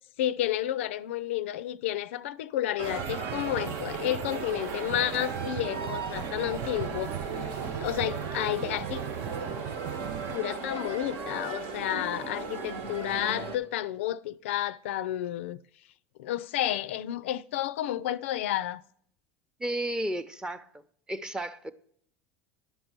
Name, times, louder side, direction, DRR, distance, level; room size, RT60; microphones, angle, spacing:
voice 1, 0.2-7.1 7.4-9.0 10.3-15.6 16.2-18.8, left 13 dB, 85° left, 0.3 m, -31 dB
sound 1, 2.8-10.4, right 12 dB, 60° right, 0.4 m, -39 dB
sound 2, 2.8-13.6, right 4 dB, 75° right, 1.2 m, -36 dB
voice 2, 19.6-20.7 21.1-21.7, right 1 dB, 10° right, 0.6 m, -32 dB
11.0 x 5.3 x 4.4 m
supercardioid pair, 95°, 7 cm